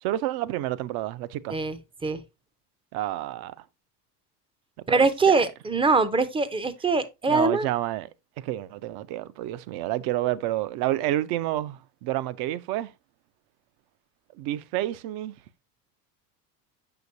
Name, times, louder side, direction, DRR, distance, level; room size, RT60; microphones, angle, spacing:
voice 1, 0.0-1.6 2.9-3.6 4.9-5.4 7.3-8.1 8.4-12.9 14.4-15.3, right 14 dB, 55° right, 0.6 m, -29 dB
voice 2, 1.5-2.2 4.9-7.7, right 4 dB, 10° right, 0.5 m, -23 dB
6.9 x 6.0 x 2.7 m
hypercardioid pair, 95°, 47 cm